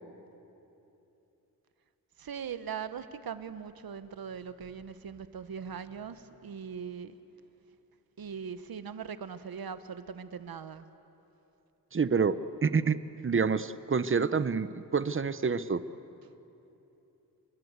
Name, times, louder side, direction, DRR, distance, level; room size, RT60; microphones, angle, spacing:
voice 1, 2.2-7.2 8.2-10.8, right 7 dB, 75° right, 12 dB, 1.2 m, -40 dB
voice 2, 11.9-15.8, right 5 dB, 35° right, 14 dB, 0.7 m, -28 dB
30.0 x 22.0 x 8.2 m, 2.9 s
wide cardioid pair, 115°, 36 cm